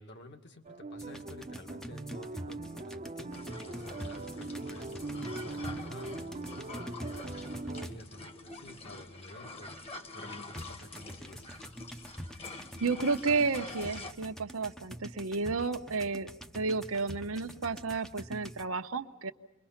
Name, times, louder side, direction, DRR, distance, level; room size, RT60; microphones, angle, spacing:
voice 1, 0.0-11.5, left 1 dB, 55° left, 5 dB, 2.1 m, -51 dB
sound 1, 0.6-7.9, right 2 dB, 35° right, 0.8 m, -41 dB
sound 2, 1.0-8.2 10.5-18.6, equal, ahead, 0.7 m, -46 dB
sound 3, 3.3-14.1, left 2 dB, 30° left, 1.5 m, -46 dB
voice 2, 12.8-19.3, right 4 dB, 70° right, 7 dB, 1.0 m, -32 dB
29.0 x 23.0 x 5.8 m, 1.0 s
head